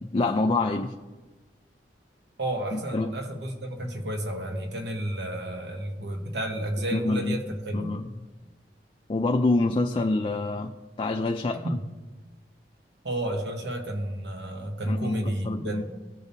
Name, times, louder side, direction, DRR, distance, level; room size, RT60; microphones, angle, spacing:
voice 1, 0.0-0.9 2.7-3.2 6.9-7.4 7.7-8.1 9.1-11.8 14.9-15.9, left 2 dB, 30° left, 4 dB, 0.4 m, -26 dB
voice 2, 2.4-7.9 11.6-11.8 13.0-15.9, right 1 dB, 75° right, 3 dB, 1.2 m, -31 dB
15.0 x 5.3 x 2.7 m, 1.2 s
head